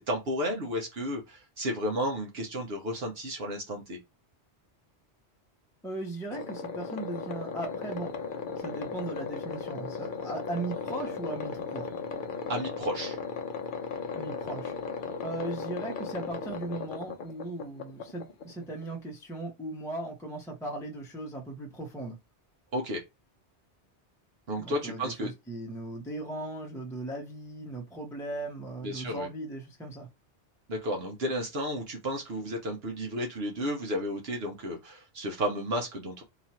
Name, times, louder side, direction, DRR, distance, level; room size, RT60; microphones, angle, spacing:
voice 1, 0.0-4.0 12.5-13.2 22.7-23.0 24.5-25.3 28.8-29.3 30.7-36.2, equal, 65° right, 1.0 m, -32 dB
voice 2, 5.8-8.1 8.6-11.9 14.1-14.7 15.2-22.2 24.6-30.1, right 2 dB, 5° left, 0.7 m, -38 dB
sound 1, 6.3-18.9, left 5 dB, 55° left, 0.7 m, -36 dB
2.9 x 2.4 x 4.2 m
omnidirectional pair, 1.2 m